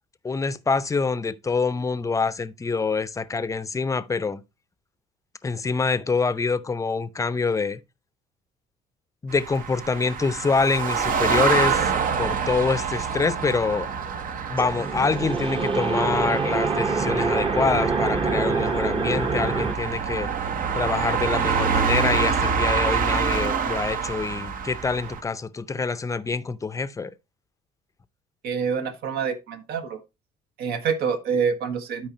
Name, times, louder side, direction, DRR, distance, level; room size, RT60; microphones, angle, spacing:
voice 1, 0.2-4.4 5.4-7.8 9.2-11.9 12.2-13.9 14.5-20.3 20.7-27.1, left 4 dB, 20° left, 0.6 m, -25 dB
sound 1, 9.3-25.2, right 6 dB, 55° right, 0.9 m, -27 dB
sound 2, 13.4-19.7, right 4 dB, 30° right, 1.0 m, -26 dB
voice 2, 28.4-30.0 30.6-32.1, right 6 dB, 70° right, 1.5 m, -26 dB
12.5 x 4.8 x 2.8 m
cardioid pair, 110°, 17 cm